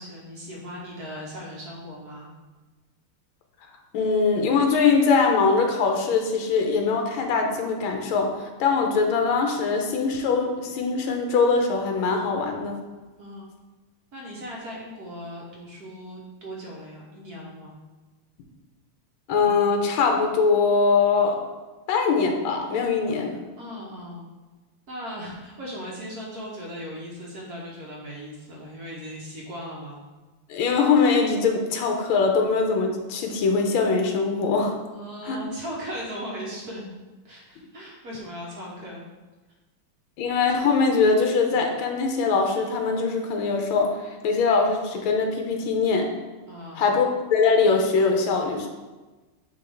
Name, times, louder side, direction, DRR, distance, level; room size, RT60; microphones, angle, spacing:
voice 1, 0.0-2.3 13.2-13.5 14.1-17.8 23.1-24.3 24.9-30.0 34.9-36.8 37.2-39.0 46.5-47.0, equal, 55° right, -3 dB, 1.3 m, -38 dB
voice 2, 3.9-12.8 19.3-21.4 21.9-23.4 30.5-34.7 35.2-35.4 40.2-46.1 46.8-48.7, left 4 dB, 80° left, 3 dB, 1.5 m, -22 dB
9.1 x 3.1 x 3.4 m, 1.2 s
omnidirectional pair, 2.3 m